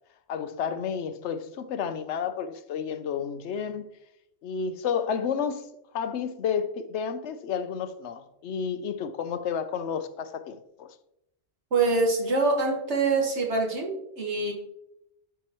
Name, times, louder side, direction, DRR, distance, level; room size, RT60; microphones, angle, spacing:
voice 1, 0.3-3.9 4.4-5.7 5.9-10.9, left 7 dB, 85° left, 0.9 m, -31 dB
voice 2, 11.7-14.5, right 3 dB, 85° right, 1.9 m, -25 dB
12.0 x 4.6 x 3.0 m
omnidirectional pair, 1.1 m